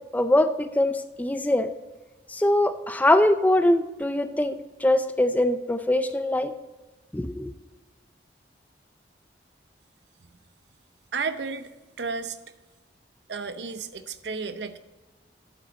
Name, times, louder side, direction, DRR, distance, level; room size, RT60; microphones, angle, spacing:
voice 1, 0.1-1.7 2.3-6.5 7.1-7.5, left 1 dB, 10° left, 10 dB, 0.4 m, -22 dB
voice 2, 11.1-11.7 12.0-12.4 13.3-14.8, right 4 dB, 75° right, 11 dB, 0.7 m, -32 dB
11.5 x 6.7 x 4.1 m, 1.2 s
head